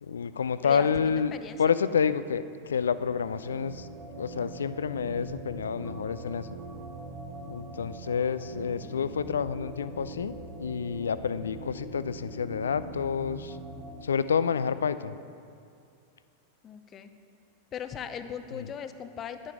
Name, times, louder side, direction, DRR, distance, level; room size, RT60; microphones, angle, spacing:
voice 1, 0.0-3.9 4.2-6.6 7.5-13.6 14.0-15.1 18.5-18.7, left 6 dB, 70° left, 14 dB, 0.4 m, -29 dB
sound 1, 2.6-14.0, right 2 dB, 15° right, 1.6 m, -43 dB
voice 2, 8.5-9.2 16.6-17.1 17.7-19.5, left 8 dB, 30° left, 9 dB, 0.7 m, -39 dB
11.0 x 8.9 x 4.9 m, 2.4 s
figure-of-eight pair, 90°, 0 cm